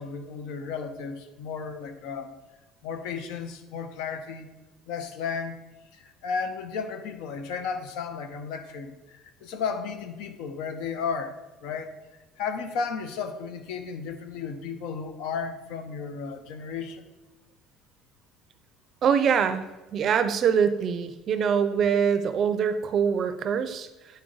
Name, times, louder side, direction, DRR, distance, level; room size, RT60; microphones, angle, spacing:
voice 1, 0.0-2.3 2.8-4.5 4.9-5.5 5.9-11.9 12.4-17.0, left 5 dB, 75° left, 7 dB, 0.8 m, -34 dB
voice 2, 19.0-24.2, right 7 dB, 35° right, 10 dB, 0.5 m, -24 dB
9.2 x 4.2 x 3.9 m, 1.1 s
cardioid pair, 155°, 0 cm